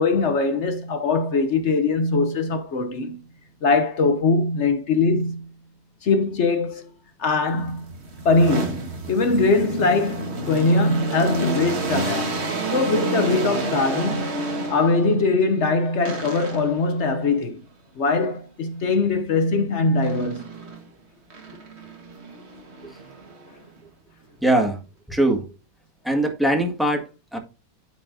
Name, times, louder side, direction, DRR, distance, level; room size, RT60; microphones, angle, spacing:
voice 1, 0.0-3.2 3.6-5.5 6.0-6.9 7.2-7.9 8.2-12.4 12.7-14.4 14.7-17.6 18.0-20.5, left 3 dB, 60° left, 0.7 m, -21 dB
sound 1, 7.5-15.2 16.1-16.9 20.0-20.8 21.3-23.7, right 2 dB, 40° right, 1.4 m, -30 dB
voice 2, 24.4-24.8 25.1-25.4 26.0-27.4, right 1 dB, ahead, 1.3 m, -21 dB
12.5 x 4.7 x 2.6 m
omnidirectional pair, 2.0 m